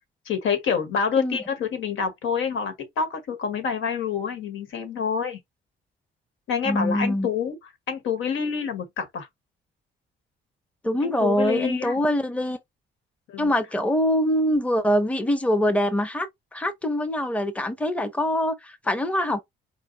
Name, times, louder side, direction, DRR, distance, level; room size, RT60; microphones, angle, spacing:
voice 1, 0.2-5.4 6.5-7.5 7.9-9.3 11.0-12.0 13.3-13.5, left 6 dB, 80° left, 1.6 m, -27 dB
voice 2, 6.7-7.3 10.8-12.6 13.4-16.3 16.5-19.4, equal, 5° left, 0.7 m, -24 dB
4.7 x 2.2 x 3.9 m
cardioid pair, 90°, 20 cm